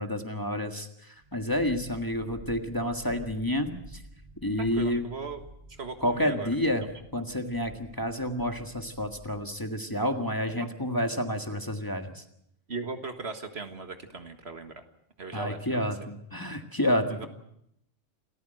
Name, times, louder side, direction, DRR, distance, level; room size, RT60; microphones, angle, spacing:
voice 1, 0.0-4.0 4.4-5.0 6.0-6.8 7.1-12.2 15.3-17.3, left 1 dB, 15° left, 5 dB, 1.7 m, -29 dB
sound 1, 1.2-9.6, right 1 dB, 30° right, 5.3 m, -51 dB
voice 2, 4.6-5.4 5.7-6.5 10.6-10.7 12.7-14.8 15.2-15.9 17.1-17.3, right 4 dB, 55° right, 7 dB, 1.9 m, -38 dB
28.0 x 14.5 x 7.9 m, 0.77 s
omnidirectional pair, 1.3 m